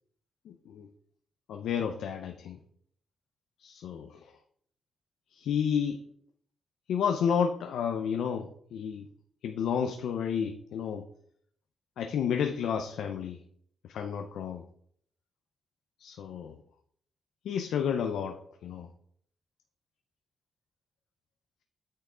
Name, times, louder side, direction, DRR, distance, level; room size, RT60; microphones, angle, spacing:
voice 1, 0.5-0.9 1.5-2.6 3.6-4.2 5.3-6.0 6.9-9.1 9.4-11.0 12.0-13.4 13.9-14.6 16.0-16.5 17.4-18.4 18.6-18.9, left 7 dB, 85° left, 5 dB, 0.7 m, -31 dB
8.6 x 5.8 x 3.8 m, 0.63 s
cardioid pair, 80°, 0 cm